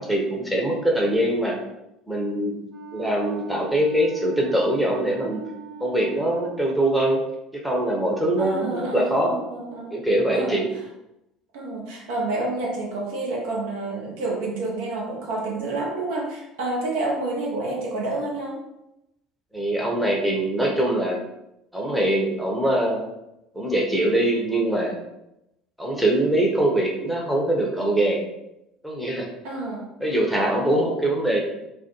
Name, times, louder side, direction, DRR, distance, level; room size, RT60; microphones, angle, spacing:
voice 1, 0.0-1.6 2.1-2.6 2.9-5.4 5.8-7.2 7.5-9.4 9.9-10.7 19.5-21.2 21.7-23.0 23.5-25.0 25.8-28.2 28.8-29.3 30.0-31.4, right 1 dB, ahead, -2 dB, 0.7 m, -23 dB
Wind instrument woodwind instrument, 2.7-6.9, right 5 dB, 45° right, 0.9 m, -41 dB
voice 2, 8.4-10.0 10.3-10.7 11.5-18.6 25.9-26.0 29.4-29.9, right 2 dB, 70° right, -2 dB, 0.6 m, -29 dB
2.2 x 2.1 x 2.9 m, 0.88 s
figure-of-eight pair, 65°, 0 cm